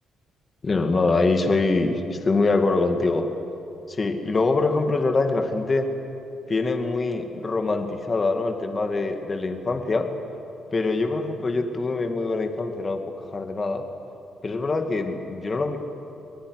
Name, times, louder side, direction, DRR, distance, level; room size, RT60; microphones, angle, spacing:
voice 1, 0.6-3.3 3.9-5.9 6.5-10.1 10.7-13.0 13.3-13.8 14.4-15.8, left 3 dB, 30° left, 5 dB, 2.3 m, -24 dB
25.0 x 20.0 x 9.6 m, 2.8 s
cardioid pair, 90°, 0 cm